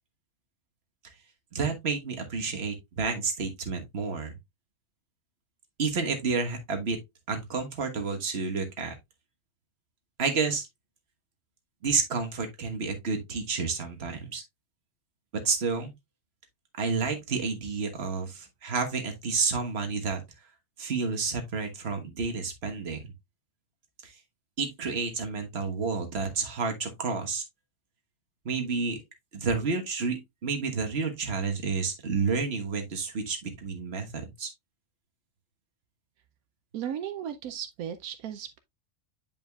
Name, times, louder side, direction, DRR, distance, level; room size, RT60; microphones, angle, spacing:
voice 1, 1.5-4.3 5.8-7.0 7.3-8.9 10.2-10.7 11.8-14.4 15.3-15.9 16.8-20.2 20.8-23.0 24.0-24.1 24.6-27.4 28.4-29.0 29.3-34.5, right 4 dB, 45° right, 1.5 m, -30 dB
voice 2, 36.7-38.6, right 9 dB, 80° right, 1.1 m, -36 dB
8.8 x 5.0 x 2.3 m
omnidirectional pair, 1.5 m